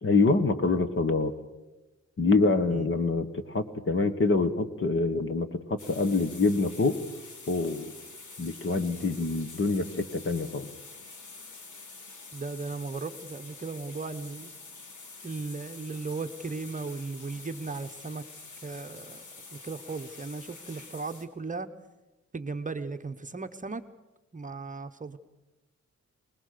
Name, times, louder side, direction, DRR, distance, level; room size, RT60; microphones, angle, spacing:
voice 1, 0.0-1.3 2.2-7.0 7.5-7.9 8.4-10.7, left 3 dB, 45° left, 10 dB, 1.6 m, -26 dB
sound 1, 5.8-21.2, left 4 dB, 85° left, 3.0 m, -47 dB
voice 2, 12.3-14.5 15.2-18.2 18.6-19.2 19.6-21.7 22.3-23.8 24.3-25.2, right 4 dB, 25° right, 7 dB, 1.0 m, -36 dB
25.5 x 19.5 x 6.8 m, 1.1 s
wide cardioid pair, 125°, 30 cm